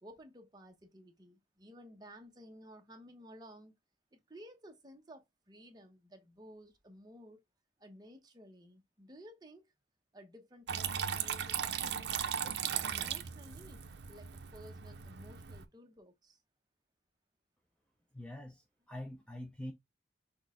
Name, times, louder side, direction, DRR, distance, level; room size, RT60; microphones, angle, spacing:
voice 1, 0.0-3.7 4.1-7.4 7.8-9.7 10.1-16.4, equal, 25° right, 0.9 m, -55 dB
Water tap faucet / Trickle dribble, 10.7-15.7, right 8 dB, 70° right, 0.6 m, -37 dB
voice 2, 18.1-19.7, left 1 dB, 5° left, 0.5 m, -45 dB
6.3 x 2.3 x 3.6 m
head